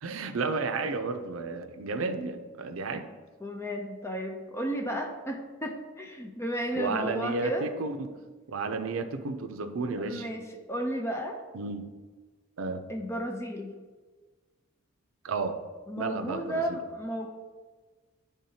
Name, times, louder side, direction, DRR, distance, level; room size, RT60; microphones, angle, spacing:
voice 1, 0.0-3.1 6.8-8.1 8.5-10.3 11.5-11.9 12.6-12.9 15.2-15.6 16.0-16.8, right 4 dB, 85° right, 8 dB, 0.5 m, -32 dB
voice 2, 3.4-7.7 10.0-11.4 12.9-13.7 15.9-17.3, equal, 15° left, 3 dB, 0.5 m, -33 dB
10.5 x 3.5 x 2.8 m, 1.4 s
head